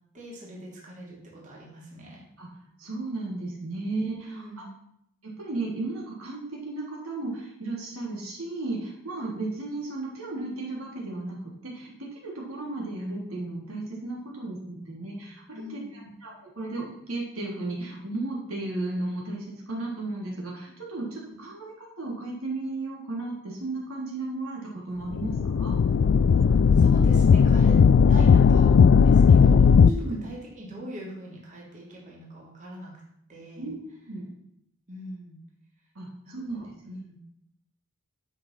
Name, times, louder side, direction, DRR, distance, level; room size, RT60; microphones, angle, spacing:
voice 1, 0.1-2.2 4.2-4.6 15.5-16.1 21.3-21.4 26.3-27.8 28.1-33.0 33.3-33.7 34.9-35.4 36.2-37.1, right 1 dB, 35° right, -4 dB, 3.1 m, -41 dB
voice 2, 2.8-4.5 5.2-25.7 29.8-30.3 33.6-33.7 34.1-34.3 36.0-36.6 36.9-37.0, right 2 dB, 75° right, -3 dB, 3.5 m, -34 dB
sound 1, 25.1-29.9, left 6 dB, 60° left, 0.3 m, -17 dB
11.0 x 5.9 x 6.1 m, 0.75 s
head